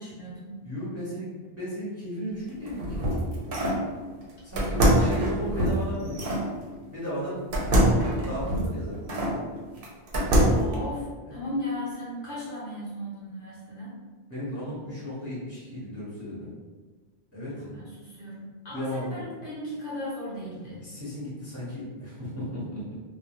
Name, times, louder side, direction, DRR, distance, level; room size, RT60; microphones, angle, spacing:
voice 1, 0.0-0.5 10.4-13.9 17.6-20.8, left 1 dB, 55° left, -7 dB, 0.8 m, -36 dB
voice 2, 0.6-3.1 4.4-6.3 6.9-9.4 11.2-11.5 14.3-16.5 17.3-17.7 18.7-19.2 20.8-23.0, equal, 15° right, -9 dB, 0.8 m, -35 dB
sound 1, 2.5-3.8 4.6-6.5 7.5-9.4 9.8-10.7, right 1 dB, 60° right, 0.8 m, -24 dB
2.3 x 2.1 x 2.9 m, 1.4 s
omnidirectional pair, 1.2 m